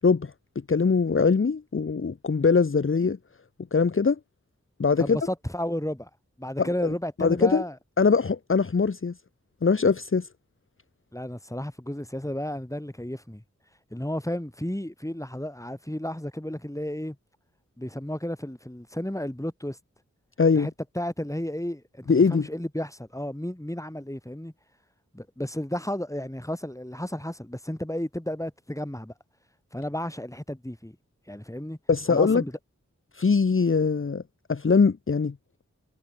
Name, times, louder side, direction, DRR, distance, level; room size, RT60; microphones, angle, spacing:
voice 1, 0.0-0.3 0.7-3.2 3.7-4.2 4.8-5.2 6.6-6.7 7.2-7.6 8.0-9.1 9.6-10.3 20.4-20.7 22.1-22.5 31.9-32.4 33.1-34.2 34.5-35.3, left 5 dB, 45° left, 0.9 m, -22 dB
voice 2, 5.0-6.1 6.4-7.8 11.1-13.4 13.9-17.2 17.8-19.8 20.5-24.5 25.1-29.1 29.7-31.0 31.3-31.8 32.1-32.5, left 1 dB, 10° left, 7.0 m, -33 dB
wide cardioid pair, 45°, 30 cm